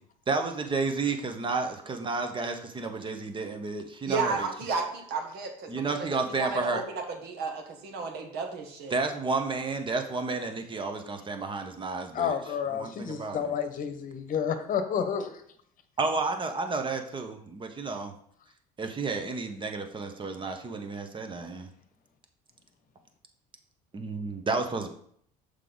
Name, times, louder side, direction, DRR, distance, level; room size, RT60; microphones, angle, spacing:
voice 1, 0.3-4.5 5.7-6.8 8.9-12.4 12.7-13.5 16.0-18.1 18.8-21.7 23.9-24.9, right 3 dB, 25° right, 6 dB, 1.1 m, -31 dB
voice 2, 4.0-9.0, right 4 dB, 65° right, 3 dB, 1.5 m, -33 dB
voice 3, 12.1-15.4, left 7 dB, 50° left, 8 dB, 1.0 m, -30 dB
6.6 x 5.0 x 4.0 m, 0.66 s
supercardioid pair, 85°, 18 cm